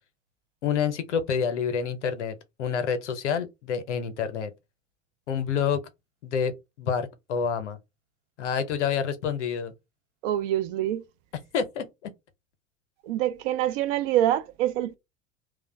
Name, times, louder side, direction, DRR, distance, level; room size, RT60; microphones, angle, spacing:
voice 1, 0.6-4.5 5.3-5.8 6.2-6.5 6.8-7.8 8.4-9.7 11.5-11.9, left 7 dB, 75° left, 0.7 m, -28 dB
voice 2, 10.2-11.0 13.1-15.0, right 12 dB, 50° right, 0.4 m, -25 dB
2.4 x 2.1 x 3.1 m
figure-of-eight pair, 80°, 36 cm